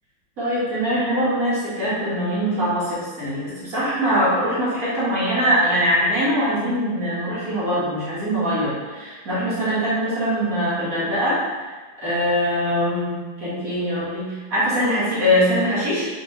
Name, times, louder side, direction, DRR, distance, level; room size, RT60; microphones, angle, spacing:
voice 1, 0.4-11.7 12.0-16.1, equal, 45° right, -10 dB, 1.7 m, -22 dB
4.5 x 3.1 x 3.1 m, 1.3 s
omnidirectional pair, 2.4 m